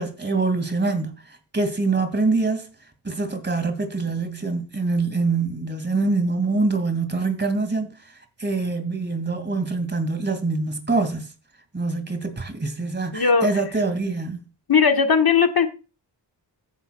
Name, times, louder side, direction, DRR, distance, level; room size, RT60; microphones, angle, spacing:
voice 1, 0.0-2.7 3.0-8.1 8.4-11.3 11.7-14.4, right 3 dB, 25° right, 2.4 m, -25 dB
voice 2, 13.1-13.5 14.7-15.7, left 6 dB, 50° left, 1.7 m, -18 dB
14.5 x 9.6 x 2.3 m
wide cardioid pair, 90°, 45 cm